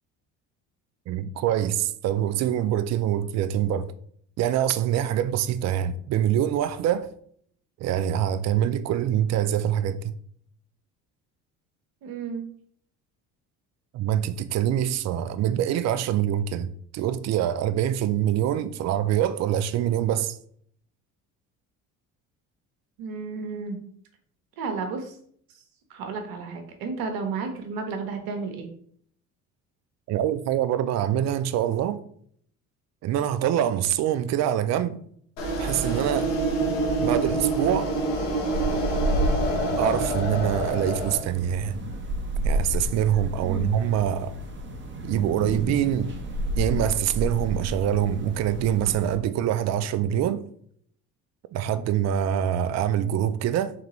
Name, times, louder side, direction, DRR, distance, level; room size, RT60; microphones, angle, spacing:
voice 1, 1.1-3.9 4.4-7.1 7.8-10.0 13.9-16.7 16.9-20.4 30.1-32.0 33.0-35.0 35.6-36.3 37.0-38.0 39.8-41.8 42.4-44.3 45.0-46.1 46.6-50.4 51.5-53.7, right 10 dB, 45° right, 0.4 m, -25 dB
voice 2, 12.0-12.5 23.0-23.8 24.6-25.2 25.9-28.7 43.4-43.7, right 4 dB, 65° right, 1.0 m, -32 dB
sound 1, 35.4-41.2, right 2 dB, 85° left, 1.1 m, -26 dB
sound 2, 38.5-49.2, right 1 dB, 30° right, 0.9 m, -31 dB
3.6 x 3.4 x 3.0 m
hypercardioid pair, 70°, 37 cm